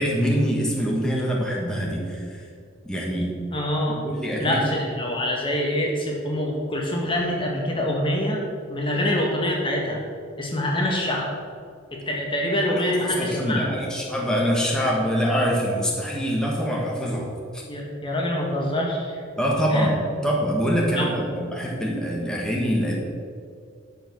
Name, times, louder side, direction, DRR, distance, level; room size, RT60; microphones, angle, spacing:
voice 1, 0.0-2.4 2.8-3.4 4.0-4.6 12.7-17.3 17.5-17.6 19.4-23.0, equal, 5° left, -3 dB, 1.5 m, -24 dB
voice 2, 3.5-4.0 4.4-8.4 8.7-10.0 10.4-11.3 11.9-13.8 17.7-19.2 19.7-19.9 20.9-21.1, left 1 dB, 25° left, -1 dB, 1.5 m, -25 dB
10.5 x 6.7 x 6.3 m, 2.2 s
head